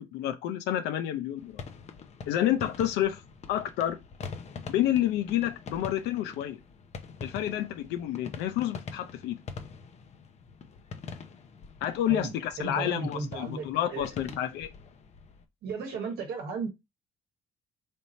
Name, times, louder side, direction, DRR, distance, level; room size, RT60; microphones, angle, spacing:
voice 1, 0.0-1.6 2.3-3.2 3.5-4.0 4.7-6.6 7.2-9.4 11.8-14.7, left 12 dB, 90° left, 0.6 m, -29 dB
sound 1, 1.4-15.4, left 5 dB, 40° left, 0.6 m, -44 dB
voice 2, 12.1-13.7 13.9-14.4 15.6-16.7, right 4 dB, 65° right, 1.0 m, -35 dB
3.4 x 2.7 x 4.2 m
cardioid pair, 110°, 17 cm